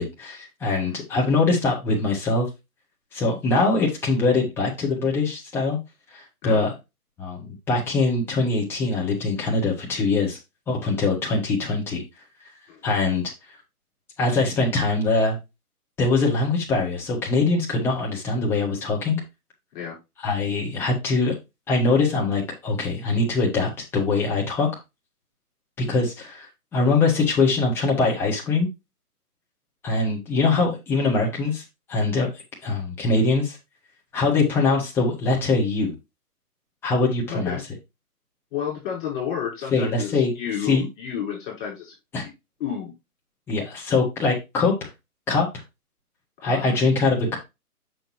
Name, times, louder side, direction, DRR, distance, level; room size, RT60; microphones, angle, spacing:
voice 1, 0.0-2.5 3.1-5.8 6.1-6.7 7.2-10.4 10.7-12.0 12.8-13.3 14.2-15.4 16.0-19.2 20.2-21.3 21.7-24.7 25.8-28.7 29.8-31.6 31.9-32.3 32.6-33.6 34.1-35.9 36.8-37.6 39.7-40.3 40.6-40.9 42.1-42.2 43.5-44.9 45.3-45.5 46.4-47.4, left 3 dB, 5° left, -3 dB, 0.9 m, -23 dB
voice 2, 37.3-37.6 38.5-41.9 42.2-42.3 42.6-42.9 46.4-46.7, left 8 dB, 35° left, -2 dB, 4.7 m, -31 dB
6.5 x 6.2 x 3.0 m, 0.23 s
figure-of-eight pair, 140°, 46 cm